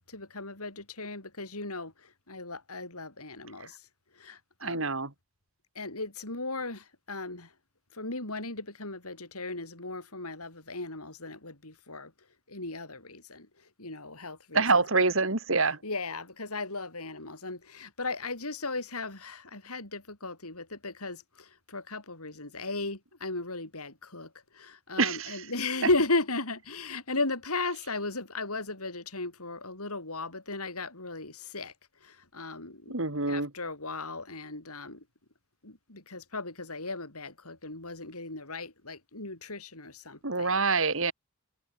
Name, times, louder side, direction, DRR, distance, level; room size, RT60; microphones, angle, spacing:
voice 1, 0.1-3.8 4.2-4.9 5.8-7.5 7.9-12.1 12.5-13.5 13.8-15.0 15.8-31.7 32.0-33.0 33.3-35.0 35.6-40.6, left 2 dB, 85° left, 6.9 m, -36 dB
voice 2, 4.6-5.1 14.5-15.8 25.0-25.4 32.9-33.5 40.2-41.1, right 4 dB, 60° right, 2.7 m, -26 dB
head